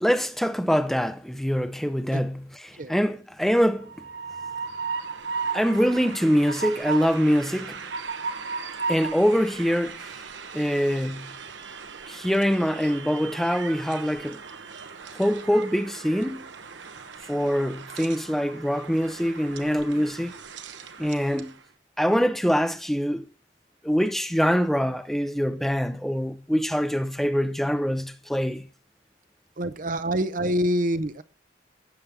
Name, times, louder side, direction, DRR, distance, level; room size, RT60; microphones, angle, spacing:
voice 1, 0.0-3.9 5.5-7.8 8.9-10.1 10.5-11.3 12.1-14.4 15.1-16.4 17.3-20.4 21.0-21.5 22.0-23.3 23.8-28.7, equal, ahead, 0.6 m, -24 dB
Train, 3.8-21.6, right 5 dB, 70° right, 1.1 m, -37 dB
voice 2, 29.6-31.2, equal, 45° right, 0.7 m, -26 dB
12.5 x 8.5 x 3.6 m
head